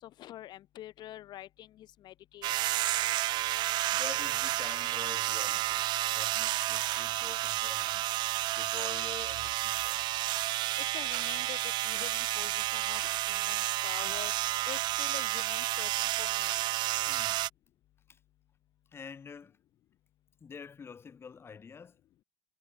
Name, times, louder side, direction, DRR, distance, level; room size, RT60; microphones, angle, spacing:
voice 1, 0.0-2.6 10.8-16.7, left 13 dB, 60° left, 2.5 m, -46 dB
sound 1, 2.4-17.5, right 16 dB, 60° right, 0.4 m, -31 dB
voice 2, 3.9-5.8 6.1-8.1 8.5-10.0 17.1-17.4 18.1-18.2 18.9-19.6 20.4-22.0, left 6 dB, 30° left, 2.3 m, -47 dB
cardioid pair, 120°, 8 cm